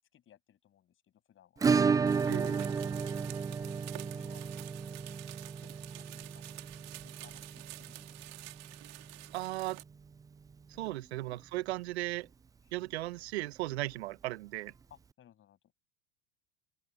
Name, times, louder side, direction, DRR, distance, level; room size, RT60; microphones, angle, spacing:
voice 1, 0.0-1.7 2.4-2.8 3.6-4.4 4.8-6.6 7.0-8.4 10.7-11.0 12.6-12.7 14.9-15.6, left 10 dB, 40° left, 7.9 m, -62 dB
Acoustic guitar / Strum, 1.6-10.2 10.5-10.6 10.9-11.0 11.3-11.4 13.5-13.6 14.7-14.8, right 5 dB, 10° right, 0.4 m, -33 dB
sound 1, 2.1-9.8, right 18 dB, 50° right, 2.5 m, -49 dB
voice 2, 2.3-2.7 9.3-9.8 10.8-12.3 12.7-14.7, right 18 dB, 75° right, 1.2 m, -36 dB
open air
hypercardioid pair, 95°, 33 cm